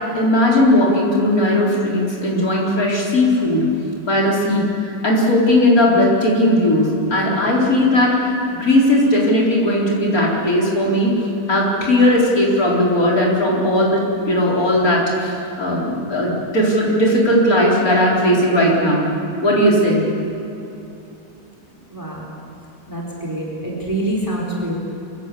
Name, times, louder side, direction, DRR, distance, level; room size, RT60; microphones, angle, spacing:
voice 1, 0.1-3.7 4.1-4.6 5.0-8.3 8.6-11.1 11.5-19.1 19.4-20.1, left 1 dB, 55° left, -4 dB, 4.8 m, -17 dB
voice 2, 21.9-22.3 22.9-24.7, right 1 dB, 10° right, -2 dB, 4.1 m, -25 dB
25.0 x 15.5 x 8.6 m, 2.9 s
omnidirectional pair, 1.9 m